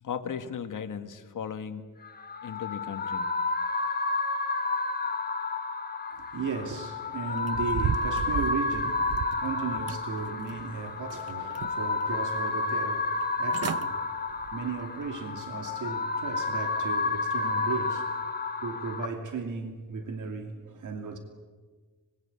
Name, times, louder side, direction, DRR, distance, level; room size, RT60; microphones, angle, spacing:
voice 1, 0.0-1.9 2.4-3.3, left 7 dB, 70° left, 1.7 m, -36 dB
sound 1, 2.0-19.0, left 3 dB, 30° left, 1.5 m, -31 dB
voice 2, 6.1-18.2 18.6-21.2, right 4 dB, 65° right, 2.7 m, -36 dB
sound 2, 7.4-9.4 9.9-10.7 11.1-12.0 12.4-12.5 13.2-13.3 13.5-13.9 14.3-14.6 15.1-15.2, right 8 dB, 50° right, 0.7 m, -34 dB
25.5 x 21.5 x 8.5 m
wide cardioid pair, 165°, 33 cm